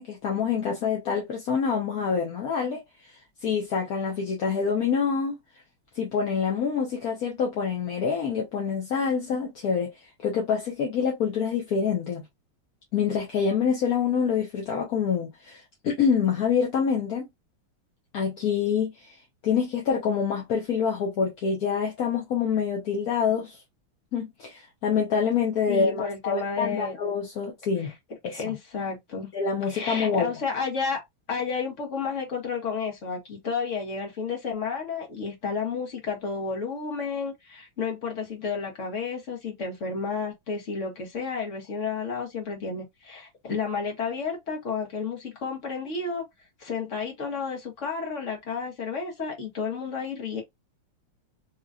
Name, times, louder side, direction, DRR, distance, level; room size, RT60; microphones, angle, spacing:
voice 1, 0.0-3.1 3.4-5.3 5.9-9.9 10.2-12.2 12.9-17.3 18.1-19.1 19.4-23.6 24.1-27.9 28.2-28.5 29.3-30.3, left 6 dB, 55° left, 1.1 m, -26 dB
voice 2, 25.7-27.0 27.8-27.9 28.3-29.3 29.7-31.0 31.3-46.2 46.6-50.4, left 5 dB, 40° left, 1.4 m, -31 dB
3.9 x 2.9 x 2.4 m
omnidirectional pair, 2.4 m